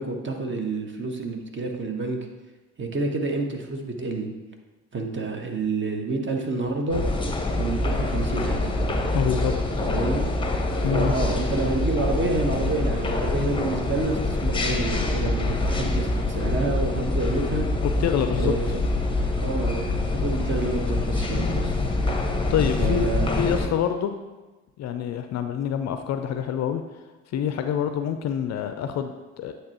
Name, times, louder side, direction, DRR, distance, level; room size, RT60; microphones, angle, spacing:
voice 1, 0.0-2.2 2.8-4.3 4.9-7.0 7.6-8.7 9.9-10.3 10.9-17.7 18.3-18.8 19.4-21.8 22.8-23.3, right 3 dB, 30° right, 3 dB, 1.1 m, -28 dB
sound 1, 6.9-23.7, left 2 dB, 15° left, 0.9 m, -25 dB
voice 2, 9.1-9.5 10.8-11.1 17.8-18.5 22.5-23.1 23.4-24.1 24.8-26.8 27.3-29.5, left 9 dB, 45° left, 8 dB, 0.5 m, -26 dB
8.6 x 3.4 x 4.2 m, 1.2 s
figure-of-eight pair, 50°, 39 cm